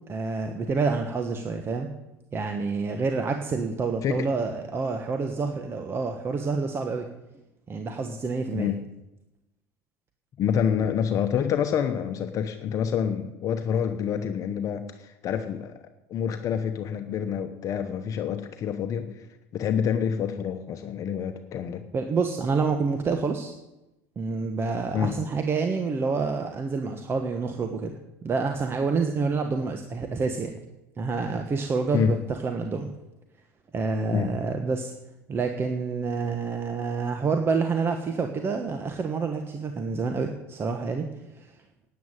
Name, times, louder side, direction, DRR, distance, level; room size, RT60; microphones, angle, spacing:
voice 1, 0.1-1.9 2.3-7.1 7.7-8.7 21.9-23.5 24.2-30.6 31.0-32.9 33.7-34.9 35.3-41.1 41.4-41.5, right 4 dB, 30° right, 5 dB, 1.3 m, -28 dB
voice 2, 10.4-15.8 16.1-19.2 19.5-21.8 24.9-25.1 31.9-32.1 34.1-34.3, left 8 dB, 45° left, 7 dB, 1.1 m, -27 dB
9.5 x 9.3 x 9.1 m, 0.95 s
supercardioid pair, 90°, 8 cm